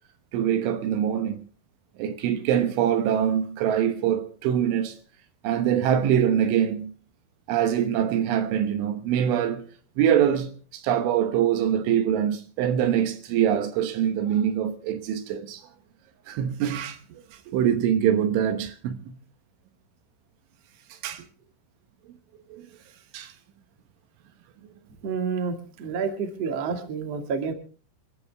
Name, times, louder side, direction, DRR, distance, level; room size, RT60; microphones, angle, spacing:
voice 1, 0.3-1.4 2.0-5.0 5.4-6.9 7.5-9.7 10.0-15.7 16.3-19.2 20.9-21.3 22.5-22.7 23.1-23.3, right 9 dB, 75° right, 3.4 m, -24 dB
voice 2, 25.0-27.5, right 5 dB, 45° right, 2.2 m, -29 dB
28.0 x 14.0 x 3.5 m
omnidirectional pair, 5.8 m